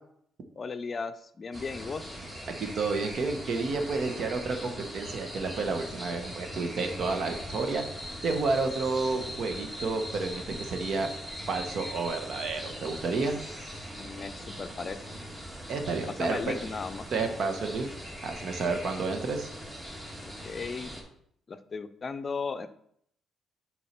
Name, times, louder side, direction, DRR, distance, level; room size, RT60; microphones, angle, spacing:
voice 1, 0.6-2.2 14.0-15.0 16.1-17.1 20.2-20.9 21.5-22.7, left 4 dB, 40° left, 10 dB, 0.5 m, -36 dB
sound 1, 1.5-21.0, equal, 15° right, 1.8 m, -41 dB
voice 2, 2.6-7.8 8.2-11.1 11.5-13.4 15.7-16.5 17.1-17.9 18.2-19.5, right 3 dB, 60° right, 5 dB, 1.1 m, -30 dB
7.1 x 4.6 x 4.4 m, 0.69 s
cardioid pair, 90°, 0 cm